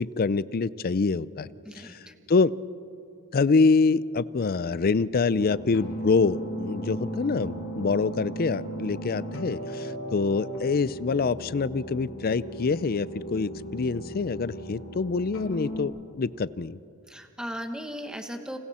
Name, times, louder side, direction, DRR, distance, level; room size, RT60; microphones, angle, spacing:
voice 1, 0.0-1.5 1.7-2.0 2.3-2.5 3.3-16.8, left 4 dB, 40° left, 18 dB, 0.4 m, -25 dB
voice 2, 1.6-2.1 17.1-18.6, equal, 5° right, 5 dB, 1.3 m, -37 dB
sound 1, 5.3-15.8, equal, 60° left, 3.4 m, -37 dB
29.5 x 27.5 x 4.3 m, 2.6 s
head